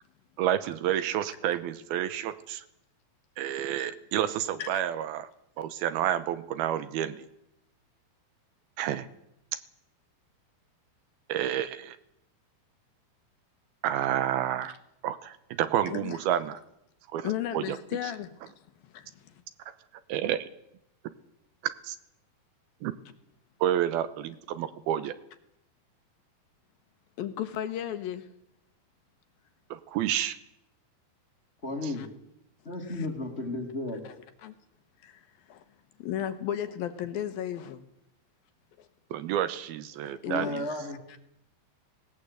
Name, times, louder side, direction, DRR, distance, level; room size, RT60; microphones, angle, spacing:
voice 1, 0.4-2.6 3.4-5.3 5.6-7.3 8.8-9.1 9.5-9.6 11.3-12.0 13.8-14.8 15.0-16.6 17.1-17.8 18.0-18.1 20.1-20.5 21.8-22.0 22.8-22.9 23.6-25.2 29.7-30.4 31.8-31.9 39.1-40.7, right 11 dB, 75° right, 13 dB, 2.6 m, -29 dB
voice 2, 15.9-16.2 17.2-18.5 18.9-19.1 27.2-28.3 31.9-32.1 32.9-33.1 34.0-34.2 34.4-34.5 35.0-35.6 36.0-37.8 38.8-38.9 40.1-41.2, left 11 dB, 70° left, 10 dB, 2.8 m, -35 dB
voice 3, 31.6-32.1 32.6-34.0 40.2-41.0, left 2 dB, 20° left, 4 dB, 1.7 m, -33 dB
19.0 x 18.5 x 8.0 m, 0.80 s
omnidirectional pair, 4.7 m